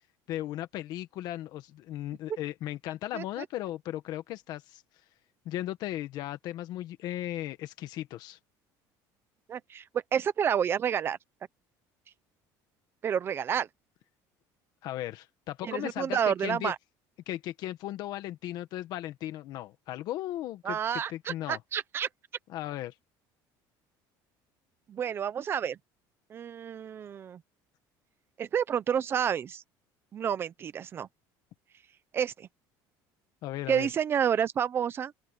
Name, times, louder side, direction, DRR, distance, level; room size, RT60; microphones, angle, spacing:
voice 1, 0.3-4.8 5.4-8.4 14.8-16.7 17.3-21.6 22.5-22.9 33.4-33.9, left 14 dB, 55° left, 1.4 m, -36 dB
voice 2, 3.1-3.5 9.5-9.8 10.1-11.2 13.0-13.7 15.6-16.8 20.6-22.1 24.9-25.8 26.3-27.4 28.4-29.6 30.1-31.1 32.1-32.5 33.7-35.1, right 8 dB, 30° right, 0.9 m, -29 dB
open air
cardioid pair, 165°, 8 cm